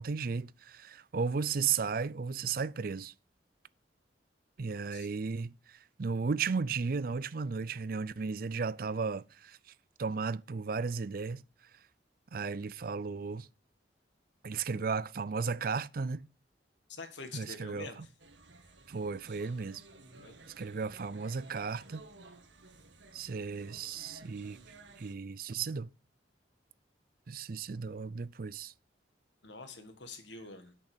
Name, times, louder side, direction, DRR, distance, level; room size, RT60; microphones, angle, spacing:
voice 1, 0.0-3.1 4.6-9.6 10.0-11.4 12.3-13.5 14.4-16.2 17.3-18.1 18.9-19.8 20.6-22.0 23.1-24.6 25.0-25.9 27.3-28.7, right 5 dB, 50° right, 0.5 m, -35 dB
voice 2, 4.7-5.1 14.7-14.8 16.9-18.0 20.2-20.4 29.4-30.7, left 3 dB, 70° left, 1.8 m, -46 dB
sound 1, 18.2-25.1, right 2 dB, 75° right, 1.7 m, -55 dB
8.7 x 6.6 x 6.1 m
head